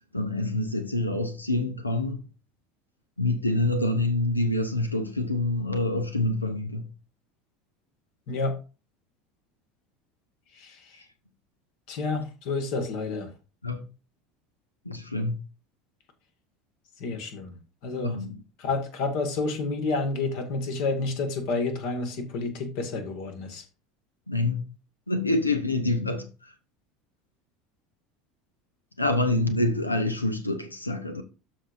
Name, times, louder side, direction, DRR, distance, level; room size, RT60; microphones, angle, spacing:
voice 1, 0.1-2.2 3.2-6.9 13.6-13.8 14.8-15.4 18.0-18.4 24.3-24.6 25.1-26.3 29.0-31.2, left 2 dB, 85° left, 0.9 m, -26 dB
voice 2, 10.5-11.0 11.9-13.3 17.0-17.5 17.8-18.2 18.6-23.6, left 3 dB, 55° left, 1.8 m, -29 dB
12.5 x 4.7 x 2.6 m
figure-of-eight pair, 70°, 0 cm